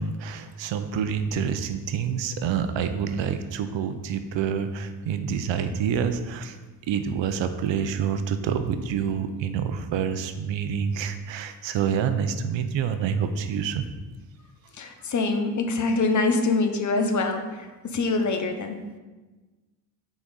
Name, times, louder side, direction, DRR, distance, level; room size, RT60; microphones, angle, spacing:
voice 1, 0.0-6.6 6.9-13.9, right 7 dB, 80° right, 9 dB, 0.6 m, -27 dB
voice 2, 14.8-18.8, left 3 dB, 40° left, 6 dB, 0.7 m, -25 dB
5.9 x 4.2 x 3.9 m, 1.2 s
cardioid pair, 110°, 44 cm